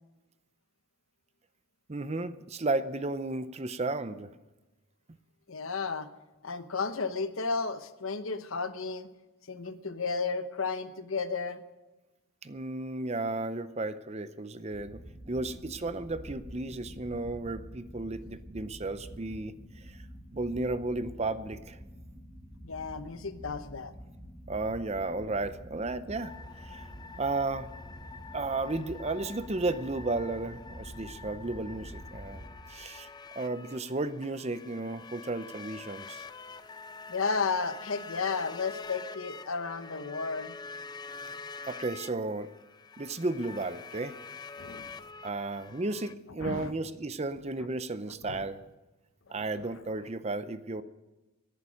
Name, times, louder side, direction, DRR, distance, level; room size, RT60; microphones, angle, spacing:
voice 1, 1.9-4.3 12.4-15.0 15.3-19.5 19.8-20.0 20.3-21.8 24.5-26.3 26.7-26.8 27.2-27.7 28.3-32.4 32.7-33.1 33.4-36.2 41.7-42.5 43.0-44.2 45.2-48.6 49.3-50.8, right 2 dB, 30° right, 13 dB, 0.6 m, -33 dB
voice 2, 5.5-6.1 6.4-9.1 9.5-11.6 22.6-23.9 37.1-40.6 44.6-44.9 46.4-46.7 48.2-48.5 49.3-49.4, left 4 dB, 70° left, 11 dB, 1.0 m, -33 dB
sound 1, 14.7-32.5, equal, ahead, 2.7 m, -47 dB
sound 2, 26.2-46.1, left 4 dB, 20° left, 0.4 m, -46 dB
18.0 x 11.5 x 6.4 m, 1.1 s
head